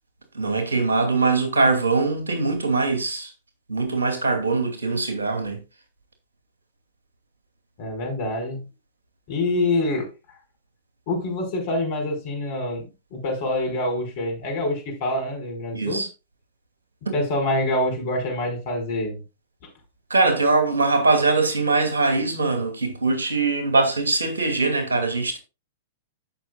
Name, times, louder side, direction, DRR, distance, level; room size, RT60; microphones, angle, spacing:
voice 1, 0.3-3.3 3.7-5.6 15.7-16.1 20.1-25.4, right 3 dB, 75° right, 2.6 m, -22 dB
voice 2, 7.8-8.6 9.3-10.1 11.1-16.0 17.1-19.2, left 1 dB, 50° left, 5.1 m, -26 dB
14.5 x 6.2 x 2.4 m
figure-of-eight pair, 100°, 0 cm